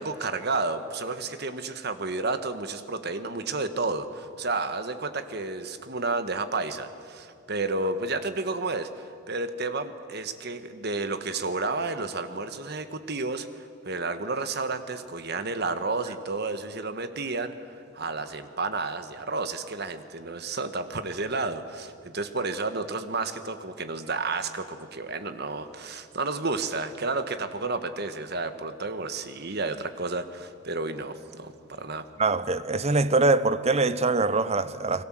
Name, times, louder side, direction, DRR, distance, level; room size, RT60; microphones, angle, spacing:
voice 1, 0.0-13.5 13.8-17.5 17.9-32.1, right 3 dB, 50° right, 1.4 m, -31 dB
voice 2, 32.2-35.0, right 3 dB, 30° right, 0.7 m, -23 dB
30.0 x 21.0 x 7.6 m
head